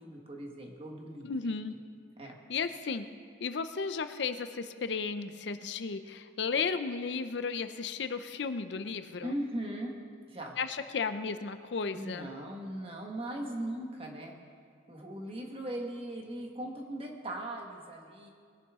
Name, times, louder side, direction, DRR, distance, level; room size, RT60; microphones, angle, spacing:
voice 1, 0.0-1.5 2.2-2.4 9.2-10.0 10.3-10.6 11.9-14.3 14.9-18.3, right 1 dB, 30° right, 1 dB, 1.5 m, -39 dB
voice 2, 1.2-1.7 2.5-3.0 3.4-9.3 10.6-12.3, left 5 dB, 65° left, 10 dB, 0.5 m, -34 dB
20.5 x 10.5 x 3.6 m, 2.1 s
head